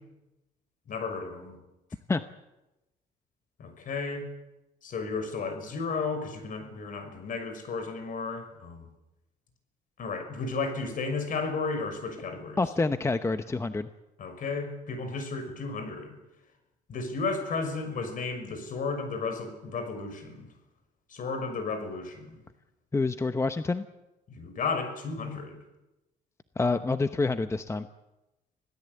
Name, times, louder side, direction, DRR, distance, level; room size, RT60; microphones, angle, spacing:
voice 1, 0.9-1.6 3.6-4.3 4.8-8.9 10.0-12.6 14.2-16.2 16.9-20.5 21.1-22.4 24.3-25.6, left 4 dB, 55° left, 8 dB, 6.2 m, -33 dB
voice 2, 12.6-13.9 22.9-23.8 26.6-27.9, left 3 dB, 15° left, 10 dB, 0.9 m, -27 dB
27.0 x 17.5 x 8.3 m, 0.99 s
cardioid pair, 110°, 17 cm